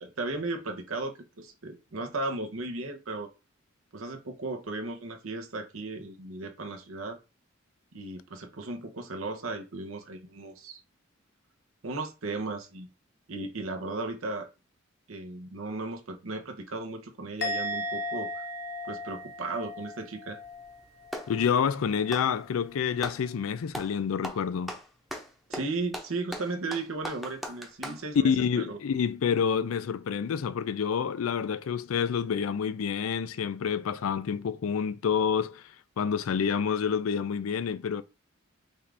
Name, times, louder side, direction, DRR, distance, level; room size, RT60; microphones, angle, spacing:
voice 1, 0.0-3.3 3.9-7.2 7.9-10.8 11.8-12.9 13.3-14.5 15.1-18.4 18.8-20.4 25.5-28.8, right 3 dB, 85° right, 0.9 m, -36 dB
Musical instrument, 17.4-20.8 21.1-21.5, left 1 dB, 50° left, 0.7 m, -36 dB
Clapping, 20.4-21.4 22.0-23.2 23.7-24.0 24.2-28.0, equal, ahead, 0.7 m, -39 dB
voice 2, 21.3-24.7 28.2-35.6 36.0-38.0, left 7 dB, 90° left, 0.4 m, -28 dB
5.4 x 2.5 x 3.3 m
head